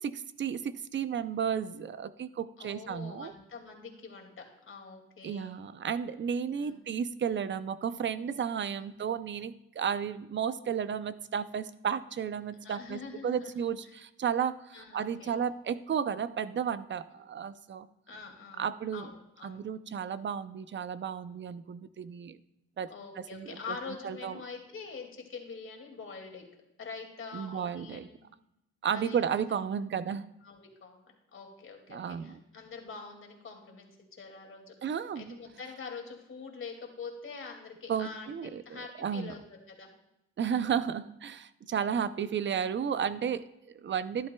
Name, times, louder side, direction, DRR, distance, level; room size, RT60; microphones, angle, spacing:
voice 1, 0.4-3.3 5.2-17.9 18.6-19.1 19.4-22.4 22.8-22.9 23.2-23.8 24.0-24.4 27.3-28.1 28.8-30.3 31.9-32.4 34.8-35.4 37.9-39.3 40.4-44.3, right 7 dB, 40° right, 14 dB, 0.5 m, -33 dB
voice 2, 2.6-5.6 6.6-6.8 8.8-9.0 12.6-13.6 14.7-15.4 18.1-18.6 18.9-19.6 22.9-26.5 26.8-28.2 28.9-29.4 30.4-34.7 35.1-39.4 39.7-39.9, left 5 dB, 45° left, 2 dB, 2.2 m, -45 dB
12.0 x 11.0 x 2.2 m, 0.87 s
cardioid pair, 90°, 30 cm